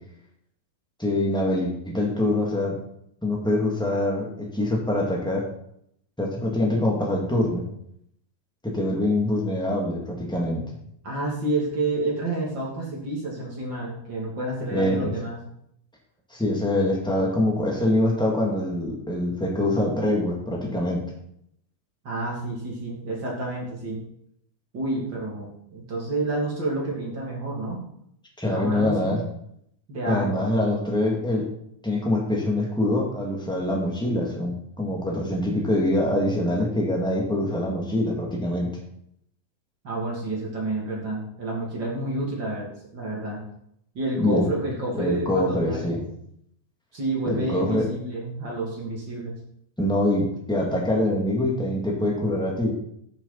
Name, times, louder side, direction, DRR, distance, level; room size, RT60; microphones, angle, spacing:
voice 1, 1.0-2.8 3.2-5.4 6.2-7.7 8.6-10.6 14.7-15.1 16.3-21.0 28.4-29.2 30.1-31.4 31.8-38.7 44.2-44.5 44.9-46.0 47.2-47.9 49.8-52.7, left 1 dB, ahead, -2 dB, 1.5 m, -24 dB
voice 2, 11.0-15.4 22.0-24.0 24.7-27.8 28.5-29.2 29.9-30.5 39.8-43.4 43.9-46.0 46.9-49.4, right 2 dB, 35° right, -3 dB, 3.0 m, -29 dB
14.0 x 7.1 x 4.1 m, 0.73 s
omnidirectional pair, 3.9 m